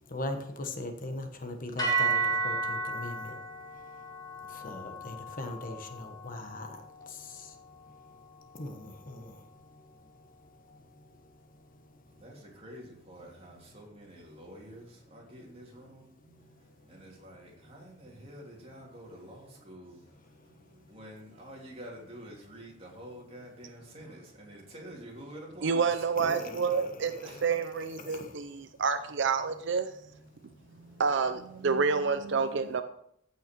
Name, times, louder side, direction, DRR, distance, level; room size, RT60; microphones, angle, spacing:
voice 1, 0.1-3.4 4.5-7.5 8.5-9.4 26.2-27.3 28.0-28.3, left 1 dB, 45° left, 1.2 m, -40 dB
sound 1, 1.8-10.0, right 3 dB, 20° left, 2.6 m, -35 dB
voice 2, 12.1-26.8 27.2-27.5 27.8-28.1, equal, 30° right, 2.9 m, -49 dB
voice 3, 25.6-27.1 27.4-29.9 30.8-32.8, right 5 dB, 65° right, 0.6 m, -28 dB
15.0 x 5.7 x 4.5 m
head